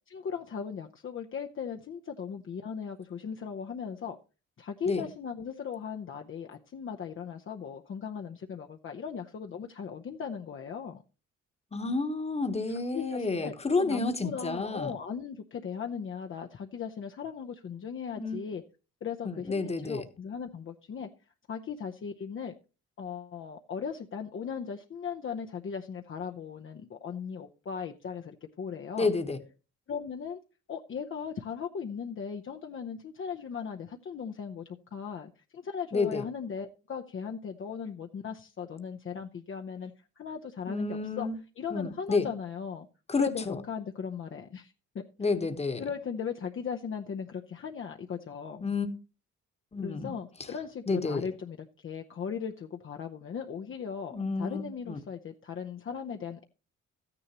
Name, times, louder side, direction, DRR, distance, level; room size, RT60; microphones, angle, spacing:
voice 1, 0.1-4.2 4.6-11.0 12.7-18.6 19.0-21.1 21.5-22.5 23.0-29.1 29.9-30.4 30.7-41.3 41.6-42.9 43.2-45.3 45.8-48.6 49.8-56.4, left 6 dB, 40° left, 0.8 m, -38 dB
voice 2, 11.7-14.9 18.2-18.4 19.2-20.0 29.0-29.4 35.9-36.2 40.7-41.3 41.7-42.3 43.1-43.6 45.2-45.9 48.6-48.9 49.7-50.1 50.9-51.3 54.1-55.0, left 3 dB, 20° left, 1.2 m, -30 dB
13.0 x 9.8 x 3.0 m
cardioid pair, 90°, 30 cm